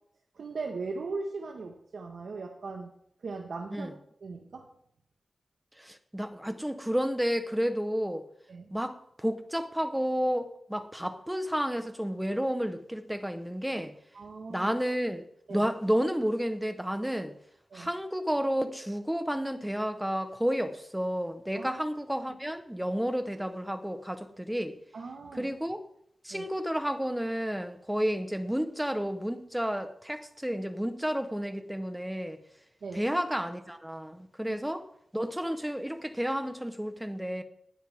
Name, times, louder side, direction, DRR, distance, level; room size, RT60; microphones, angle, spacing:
voice 1, 0.3-2.9 3.2-3.9 4.2-4.7 8.5-8.7 14.1-14.7 15.5-15.7 17.7-17.9 21.5-21.8 24.9-25.5 26.3-26.5 32.8-33.0 34.5-34.6, right 4 dB, 70° right, 1.6 m, -39 dB
voice 2, 5.8-8.2 8.7-13.9 14.5-15.2 15.5-17.3 17.7-24.8 25.3-25.8 26.2-32.4 32.9-34.9 35.1-37.4, equal, 5° right, 1.1 m, -31 dB
19.5 x 12.5 x 3.7 m
wide cardioid pair, 130°, 0 cm